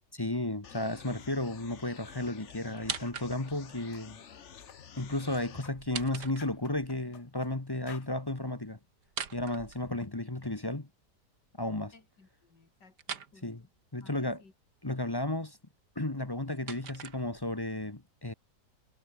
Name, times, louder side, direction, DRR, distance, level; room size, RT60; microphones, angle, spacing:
voice 1, 0.1-4.2 5.0-8.8 9.3-10.9 11.6-11.9 13.4-13.6 13.9-14.4 14.8-15.6 15.9-18.3, left 1 dB, 15° left, 1.1 m, -33 dB
sound 1, 0.6-5.6, left 7 dB, 45° left, 1.3 m, -50 dB
sound 2, 2.7-3.7 5.7-6.9 9.0-10.4 13.0-13.3 16.1-17.7, right 7 dB, 75° right, 2.3 m, -42 dB
sound 3, 3.3-3.5 3.9-4.1 4.5-4.8 5.2-6.1 6.4-7.5 7.9-8.1, left 9 dB, 70° left, 1.7 m, -53 dB
voice 2, 11.9-13.7 14.0-14.5, left 4 dB, 85° left, 4.4 m, -60 dB
omnidirectional pair, 1.8 m